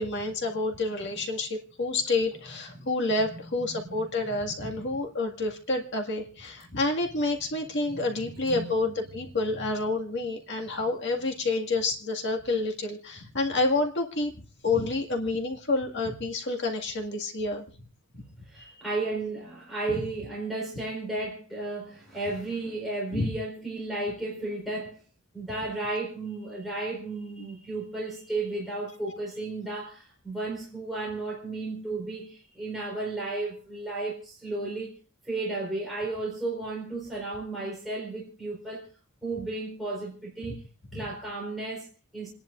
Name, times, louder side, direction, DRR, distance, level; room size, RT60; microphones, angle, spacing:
voice 1, 0.0-14.3 14.6-17.6 18.6-18.7 23.1-23.3 40.5-40.6 40.9-41.0, left 2 dB, 50° left, 1.9 m, -29 dB
voice 2, 4.2-4.7 7.9-8.1 8.4-8.7 18.5-25.0 25.3-35.0 35.2-38.9 39.2-40.6 40.9-42.3, right 2 dB, ahead, 4.4 m, -34 dB
29.5 x 11.0 x 2.5 m
head